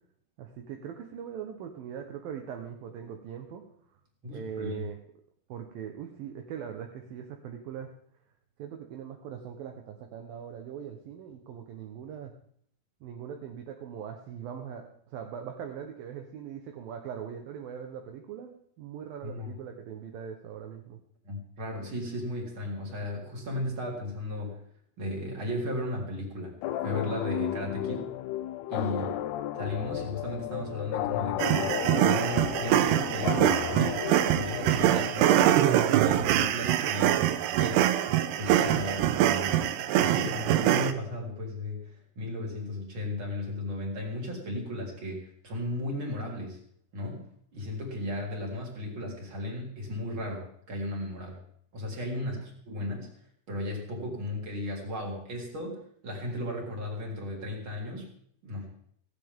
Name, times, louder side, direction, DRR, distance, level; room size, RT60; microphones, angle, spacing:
voice 1, 0.4-3.6 4.3-5.0 5.5-7.9 8.6-12.3 13.0-18.5 18.8-21.0 28.9-29.2 52.2-52.5, right 8 dB, 70° right, 3 dB, 2.7 m, -41 dB
voice 2, 4.2-4.9 19.2-19.5 21.2-24.6 25.0-26.5 26.8-28.1 28.7-29.1 29.6-37.2 37.6-37.9 38.4-39.7 40.0-46.6 46.9-51.4 51.7-53.1 53.5-58.1 58.4-58.7, left 1 dB, 30° right, -1 dB, 4.2 m, -35 dB
sound 1, 26.6-36.1, left 12 dB, 80° left, 2.7 m, -34 dB
sound 2, 31.4-40.9, right 12 dB, 90° right, 3.0 m, -24 dB
17.5 x 16.0 x 3.7 m, 0.64 s
omnidirectional pair, 4.6 m